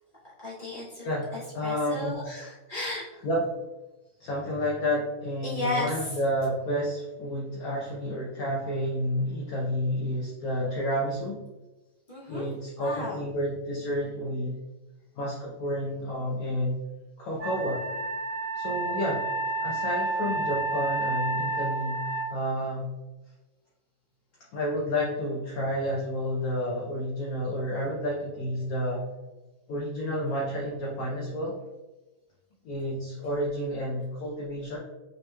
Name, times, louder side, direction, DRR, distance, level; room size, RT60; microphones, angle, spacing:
voice 1, 0.4-3.3 5.4-6.2 12.1-12.5 12.8-13.2, left 2 dB, 40° left, -9 dB, 0.8 m, -34 dB
voice 2, 1.0-2.2 3.2-3.4 4.2-11.4 12.3-14.6 15.2-16.8 17.2-17.9 18.5-19.3 19.6-22.0 22.3-22.9 24.5-29.1 29.7-31.6 32.6-34.8, equal, 70° left, -3 dB, 0.8 m, -30 dB
Wind instrument woodwind instrument, 17.4-22.3, right 3 dB, 65° right, 1.3 m, -30 dB
5.3 x 3.0 x 2.2 m, 1.1 s
omnidirectional pair, 2.3 m